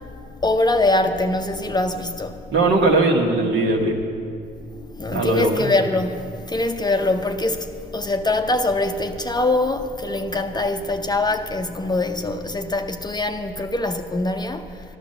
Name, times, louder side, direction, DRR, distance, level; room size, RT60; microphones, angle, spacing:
voice 1, 0.4-2.4 5.0-6.2 6.5-14.6, left 2 dB, 20° left, 0.7 m, -23 dB
voice 2, 2.5-4.0 5.1-5.7, right 2 dB, 65° right, 1.9 m, -19 dB
12.5 x 11.5 x 6.7 m
cardioid pair, 90°, 20 cm